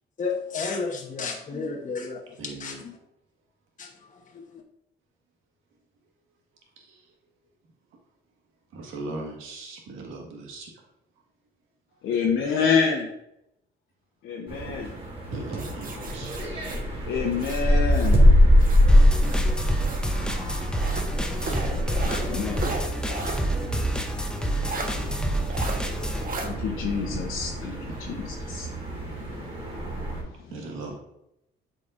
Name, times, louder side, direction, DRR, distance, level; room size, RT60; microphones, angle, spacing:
voice 1, 0.2-3.0 3.8-4.6, left 4 dB, 40° left, 1 dB, 1.0 m, -33 dB
voice 2, 2.4-2.8 6.8-7.1 8.7-10.8 15.3-16.5 20.4-20.9 21.9-22.5 24.9-25.6 26.1-26.2 27.9-28.3 30.5-31.0, right 3 dB, 90° right, 1 dB, 1.6 m, -40 dB
voice 3, 12.0-13.1 14.2-14.9 17.1-18.2 22.3-22.6 26.4-27.7 28.5-28.7, left 6 dB, 80° left, -1 dB, 0.9 m, -26 dB
sound 1, 14.5-30.2, equal, 30° right, 2.3 m, -24 dB
sound 2, 15.6-18.2 18.6-20.1 20.7-23.5 23.8-23.9 24.6-24.9 25.5-25.8 26.2-26.5, right 3 dB, 45° right, 1.2 m, -36 dB
sound 3, 18.9-26.3, right 1 dB, 5° left, 0.7 m, -29 dB
7.8 x 5.1 x 2.5 m, 0.82 s
cardioid pair, 90°, 20 cm